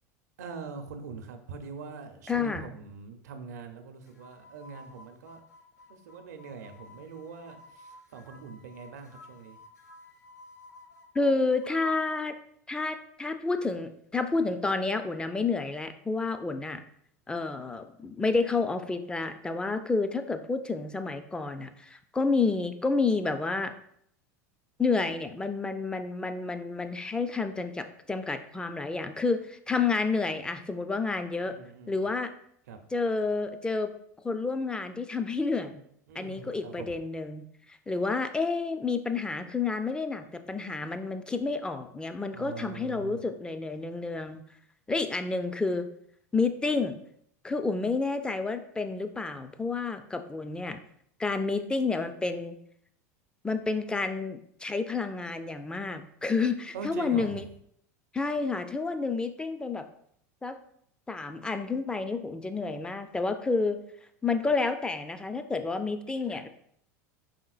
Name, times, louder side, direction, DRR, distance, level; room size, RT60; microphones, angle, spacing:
voice 1, 0.4-5.4 5.9-9.6 31.4-32.0 32.7-32.8 36.1-36.9 42.3-43.2 56.7-57.4, right 5 dB, 80° right, 7 dB, 0.6 m, -43 dB
voice 2, 2.3-2.7 11.1-12.3 12.7-16.8 17.3-23.7 24.8-31.5 31.9-32.3 32.9-33.9 34.2-35.8 36.1-44.4 44.9-45.9 46.3-47.0 47.4-50.8 51.2-52.6 53.4-57.4 58.1-59.9 60.4-60.6 61.1-63.8 64.2-66.5, left 4 dB, 10° left, 8 dB, 0.4 m, -30 dB
sound 1, 4.1-12.2, left 2 dB, 85° left, 0.6 m, -53 dB
5.0 x 3.7 x 2.4 m, 0.68 s
hypercardioid pair, 90°, 9 cm